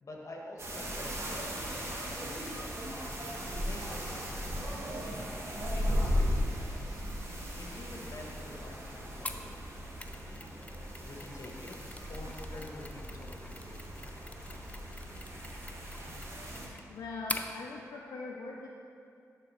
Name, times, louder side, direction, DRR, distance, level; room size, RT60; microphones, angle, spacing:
voice 1, 0.0-2.9 3.5-4.9 5.7-7.0 7.6-10.5 11.0-11.8 12.1-13.6, left 2 dB, 55° left, 0 dB, 1.4 m, -48 dB
sound 1, 0.6-16.7, equal, 45° right, 1.6 m, -37 dB
Mechanisms, 9.2-17.5, left 2 dB, 25° left, 0.5 m, -45 dB
voice 2, 16.9-18.7, left 3 dB, 80° left, -2 dB, 0.6 m, -41 dB
10.5 x 4.0 x 4.3 m, 2.4 s
cardioid pair, 50°, 6 cm